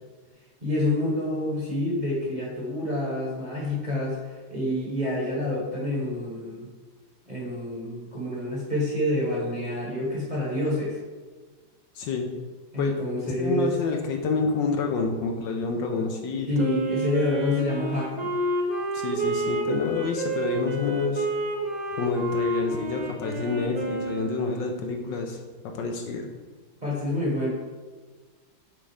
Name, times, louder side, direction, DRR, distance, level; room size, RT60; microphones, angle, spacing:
voice 1, 0.6-4.2 4.5-6.7 7.3-11.0 12.7-13.7 16.5-18.3 26.8-27.5, left 1 dB, 25° right, -4 dB, 1.2 m, -27 dB
voice 2, 12.0-12.3 12.8-12.9 13.2-16.5 18.9-21.3 22.0-25.4 25.6-26.2, left 4 dB, 75° left, 3 dB, 1.3 m, -28 dB
Wind instrument woodwind instrument, 16.6-24.7, right 1 dB, 60° right, 0.4 m, -29 dB
8.4 x 3.7 x 3.5 m, 1.4 s
omnidirectional pair, 2.2 m